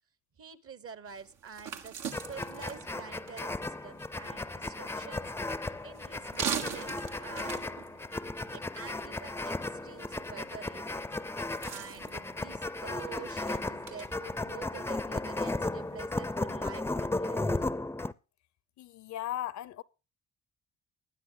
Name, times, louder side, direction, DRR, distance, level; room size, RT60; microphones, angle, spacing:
voice 1, 0.4-5.2 5.8-7.8 8.5-11.1 11.6-17.5, right 6 dB, 50° right, 1.2 m, -47 dB
sound 1, 1.1-16.3, right 7 dB, 80° right, 1.6 m, -44 dB
sound 2, 2.1-18.1, left 2 dB, 10° left, 0.5 m, -35 dB
voice 2, 18.8-19.8, left 13 dB, 70° left, 0.7 m, -37 dB
20.5 x 10.0 x 2.2 m
cardioid pair, 90°, 30 cm